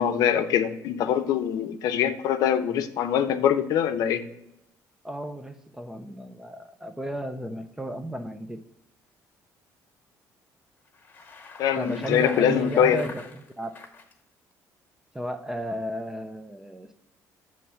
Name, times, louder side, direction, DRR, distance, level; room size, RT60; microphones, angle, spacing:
voice 1, 0.0-4.3 11.6-13.1, left 9 dB, 70° left, 8 dB, 0.6 m, -23 dB
voice 2, 5.0-8.6 11.8-13.8 15.1-16.9, right 1 dB, 5° right, 9 dB, 0.4 m, -34 dB
Bicycle, 10.8-14.1, left 4 dB, 30° left, 1.2 m, -45 dB
7.2 x 3.1 x 5.5 m, 0.84 s
cardioid pair, 155°, 6 cm